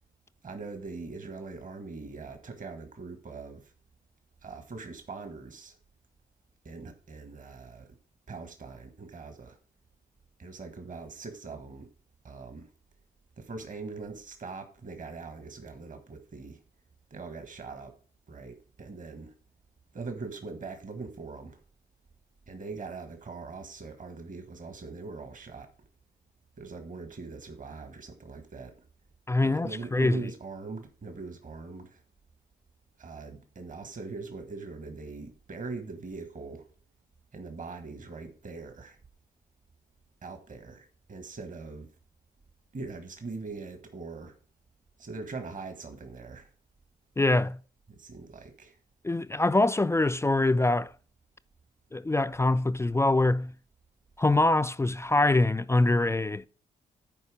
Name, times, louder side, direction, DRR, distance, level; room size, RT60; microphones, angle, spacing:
voice 1, 0.4-3.7 4.4-5.8 6.7-7.9 8.3-9.6 10.4-11.9 12.2-12.7 13.4-16.6 17.1-18.0 18.3-19.3 19.9-21.6 22.5-25.7 26.6-28.8 29.4-32.0 33.0-36.7 37.3-39.0 40.2-41.9 42.7-44.4 45.0-46.5 47.9-48.8, right 4 dB, 45° right, 1.6 m, -41 dB
voice 2, 29.3-30.2 47.2-47.6 49.0-50.9 51.9-53.5 54.2-56.5, left 2 dB, 15° left, 0.4 m, -24 dB
11.0 x 4.6 x 5.0 m
supercardioid pair, 45°, 18 cm